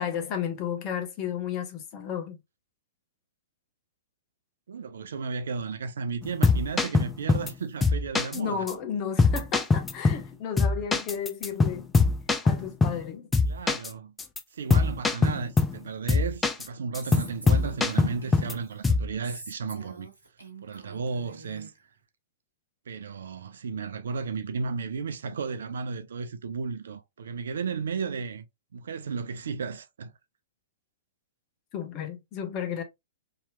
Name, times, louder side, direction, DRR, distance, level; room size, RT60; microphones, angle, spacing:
voice 1, 0.0-2.4 8.3-11.9 12.4-13.3 31.7-32.8, left 8 dB, 35° left, 0.8 m, -33 dB
voice 2, 4.7-8.7 13.5-14.1 14.5-20.1 20.6-21.7 22.9-28.5 28.7-30.1, right 5 dB, 65° right, 0.4 m, -34 dB
sound 1, 6.2-7.5 7.8-8.4 8.7-8.8 9.2-10.3 10.6-13.1 13.3-13.9 14.2-14.4 14.7-15.8 16.1-16.7 16.9-18.5 18.8-19.1, left 4 dB, 10° left, 0.4 m, -23 dB
Female speech woman speaking, 17.0-18.7 19.2-21.7, right 2 dB, 80° right, 1.0 m, -46 dB
3.0 x 2.8 x 2.3 m
figure-of-eight pair, 110°, 0 cm